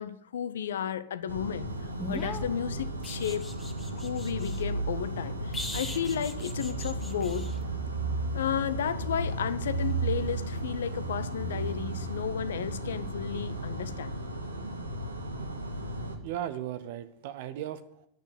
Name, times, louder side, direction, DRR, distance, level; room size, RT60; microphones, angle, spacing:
voice 1, 0.0-1.7 2.1-3.5 3.9-7.5 8.3-14.1, left 8 dB, 65° left, 0.6 m, -33 dB
sound 1, 1.3-16.2, right 2 dB, 80° right, 1.4 m, -34 dB
sound 2, 2.0-4.6 5.5-7.6 10.2-10.4, left 2 dB, 10° left, 1.4 m, -40 dB
voice 2, 16.2-18.1, right 11 dB, 50° right, 0.6 m, -36 dB
11.0 x 6.7 x 6.6 m
figure-of-eight pair, 90°, 0 cm